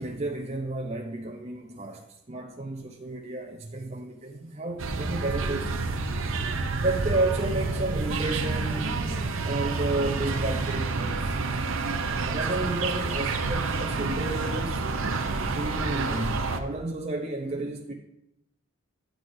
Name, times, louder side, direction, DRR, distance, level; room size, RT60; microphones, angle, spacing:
voice 1, 0.0-5.7 6.8-9.0 9.4-11.3 12.2-15.0 15.5-17.9, right 2 dB, 30° right, 0.7 m, -32 dB
sound 1, 4.8-16.6, right 3 dB, 70° right, 0.7 m, -29 dB
10.0 x 7.6 x 2.6 m
head